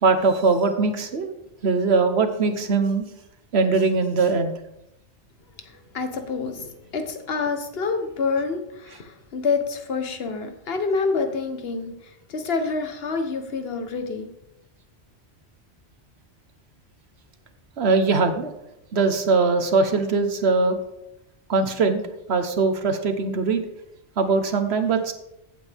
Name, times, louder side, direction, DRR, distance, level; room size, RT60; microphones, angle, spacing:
voice 1, 0.0-1.3 1.6-3.0 3.5-4.5 17.8-18.5 18.9-20.8 21.5-22.0 22.3-23.6 24.2-25.1, right 4 dB, 65° right, 8 dB, 1.3 m, -21 dB
voice 2, 5.6-14.3, left 4 dB, 60° left, 6 dB, 1.4 m, -27 dB
15.0 x 8.3 x 3.5 m, 0.88 s
omnidirectional pair, 1.2 m